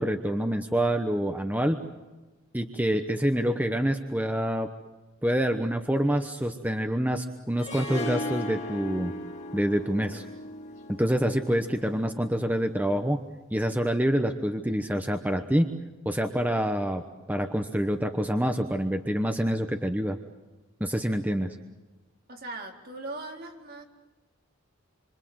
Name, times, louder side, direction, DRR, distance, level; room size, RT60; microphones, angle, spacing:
voice 1, 0.0-1.8 2.5-4.7 5.2-9.1 9.5-10.2 10.9-13.2 13.5-15.7 16.0-20.2 20.8-21.6, equal, 10° right, 6 dB, 1.0 m, -26 dB
Harp, 7.6-12.7, left 2 dB, 35° left, 4.2 m, -37 dB
voice 2, 22.3-23.9, right 2 dB, 50° right, 1 dB, 3.9 m, -39 dB
27.5 x 25.5 x 7.9 m, 1.2 s
head